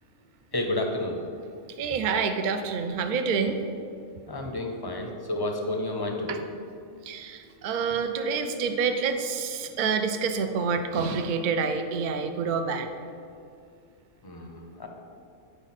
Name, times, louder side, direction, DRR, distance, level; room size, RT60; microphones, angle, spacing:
voice 1, 0.5-1.2 4.3-6.4 14.2-14.9, left 1 dB, 25° left, 2 dB, 0.5 m, -30 dB
voice 2, 1.8-3.6 6.3-6.4 7.0-12.9, right 5 dB, 55° right, 6 dB, 0.5 m, -27 dB
9.0 x 4.9 x 4.1 m, 2.4 s
omnidirectional pair, 1.3 m